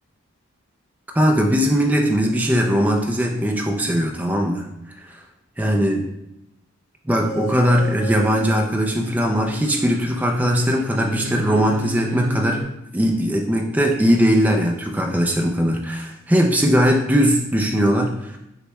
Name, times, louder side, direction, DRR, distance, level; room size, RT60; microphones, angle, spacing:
voice 1, 1.1-4.7 5.6-6.0 7.1-12.6 12.9-18.4, equal, 10° right, 2 dB, 0.4 m, -19 dB
sound 1, 7.2-8.6 8.9-12.6, right 1 dB, 65° right, 1.1 m, -33 dB
6.4 x 2.3 x 3.0 m, 0.88 s
head